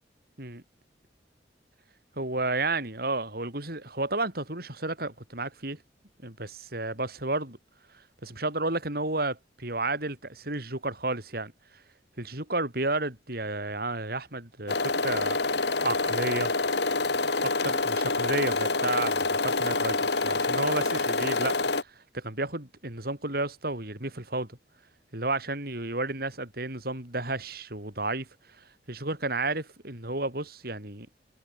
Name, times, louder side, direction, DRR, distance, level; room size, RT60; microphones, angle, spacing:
voice 1, 2.2-5.8 6.2-7.6 8.2-11.5 12.2-15.4 15.8-16.5 17.4-21.6 21.8-24.6 25.1-28.3 28.9-31.1, right 2 dB, 55° right, 5.5 m, -32 dB
sound 1, 14.7-21.8, left 3 dB, 70° left, 3.0 m, -27 dB
head